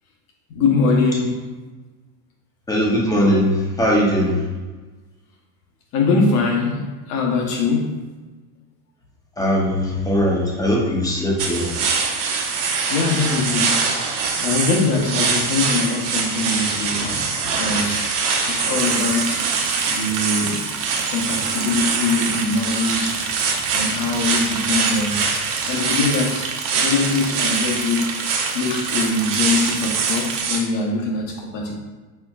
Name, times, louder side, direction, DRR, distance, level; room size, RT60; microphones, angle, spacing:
voice 1, 0.5-1.4 5.9-8.0 11.6-12.0 12.4-19.5 19.9-23.3 23.7-25.2 25.7-28.1 28.5-31.8, left 3 dB, 45° left, 1 dB, 1.0 m, -23 dB
voice 2, 2.7-4.4 9.4-11.7, equal, 10° left, -2 dB, 0.6 m, -20 dB
sound 1, 11.4-30.6, right 5 dB, 75° right, 1.1 m, -24 dB
Liquid, 18.8-30.4, right 6 dB, 35° right, 0.4 m, -30 dB
4.4 x 4.3 x 2.3 m, 1.3 s
supercardioid pair, 130°, 46 cm